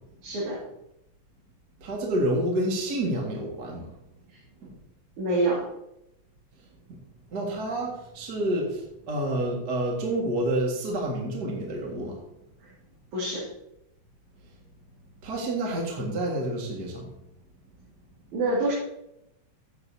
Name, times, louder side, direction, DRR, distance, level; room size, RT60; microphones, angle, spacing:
voice 1, 0.2-0.6 4.3-4.4 5.2-5.7 12.6-12.7 13.1-13.5 18.3-18.7, right 2 dB, 85° right, -6 dB, 3.9 m, -26 dB
voice 2, 1.8-3.9 4.6-4.8 7.3-12.2 15.2-17.1, right 1 dB, 35° right, -2 dB, 2.1 m, -28 dB
14.0 x 8.3 x 2.8 m, 0.84 s
omnidirectional pair, 3.3 m